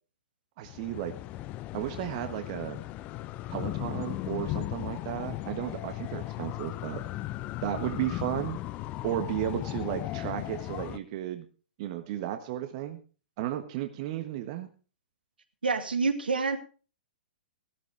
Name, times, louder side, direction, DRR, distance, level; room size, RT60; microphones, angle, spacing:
sound 1, 0.6-11.0, left 16 dB, 30° left, 0.7 m, -36 dB
voice 1, 0.6-1.1 1.7-2.8 3.5-7.0 7.6-8.6 9.0-11.4 11.8-13.0 13.4-14.7, right 12 dB, 40° right, 7 dB, 1.4 m, -34 dB
voice 2, 15.6-16.6, right 4 dB, 75° right, 7 dB, 2.2 m, -27 dB
16.0 x 13.5 x 3.4 m, 0.36 s
figure-of-eight pair, 115°, 5 cm